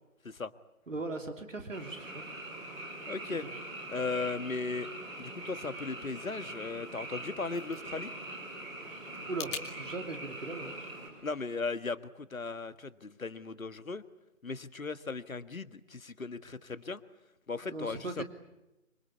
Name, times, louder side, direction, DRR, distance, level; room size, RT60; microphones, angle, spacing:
voice 1, 0.9-2.2 2.7-2.8 3.4-3.5 9.3-11.3 17.6-18.2, right 3 dB, 65° right, 6 dB, 3.1 m, -39 dB
Frog, 1.7-11.1, right 2 dB, 10° right, 4.5 m, -43 dB
voice 2, 3.1-3.4 3.9-4.9 5.2-8.1 11.2-14.0 14.4-17.0 17.5-18.2, left 4 dB, 70° left, 13 dB, 1.6 m, -37 dB
sound 1, 7.1-9.7, left 6 dB, 20° left, 2.2 m, -45 dB
27.0 x 24.0 x 8.5 m, 0.97 s
figure-of-eight pair, 150°, 42 cm